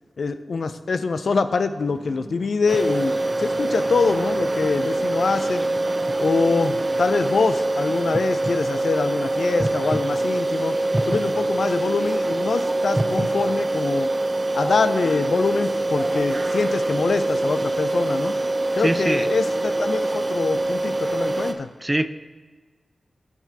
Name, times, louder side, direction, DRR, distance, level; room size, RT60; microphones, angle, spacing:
voice 1, 0.2-5.6 6.2-10.7 11.1-14.1 14.5-18.3 18.7-21.7, left 4 dB, 80° left, 10 dB, 0.4 m, -24 dB
sound 1, 2.7-21.5, right 2 dB, 50° right, 0.8 m, -24 dB
voice 2, 5.3-5.7 9.6-10.0 10.9-11.0 13.0-13.3 18.8-19.3 21.8-22.1, right 1 dB, 20° right, 11 dB, 0.5 m, -24 dB
13.0 x 5.9 x 2.8 m, 1.4 s
cardioid pair, 45°, 0 cm